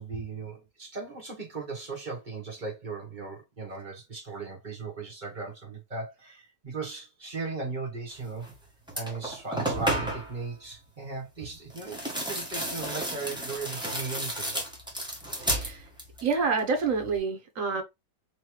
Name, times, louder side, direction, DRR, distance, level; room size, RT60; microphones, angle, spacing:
voice 1, 0.0-8.5 8.9-14.6, right 4 dB, 30° right, 1.2 m, -37 dB
sound 1, 8.4-8.6 8.9-10.4 11.7-16.3 16.6-17.2, right 1 dB, 5° right, 0.9 m, -32 dB
voice 2, 15.5-15.8 16.2-17.8, right 4 dB, 55° right, 1.1 m, -27 dB
4.0 x 3.1 x 3.1 m
omnidirectional pair, 1.9 m